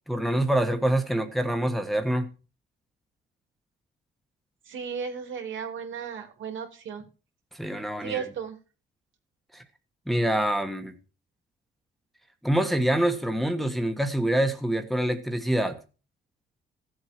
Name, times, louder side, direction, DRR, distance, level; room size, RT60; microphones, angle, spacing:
voice 1, 0.1-2.3 7.5-8.2 9.5-9.6 10.1-11.0 12.4-15.8, right 1 dB, ahead, 1.4 m, -26 dB
voice 2, 4.6-7.0 8.0-8.6, right 7 dB, 75° right, 3.3 m, -35 dB
15.0 x 7.9 x 4.7 m
cardioid pair, 90°, 20 cm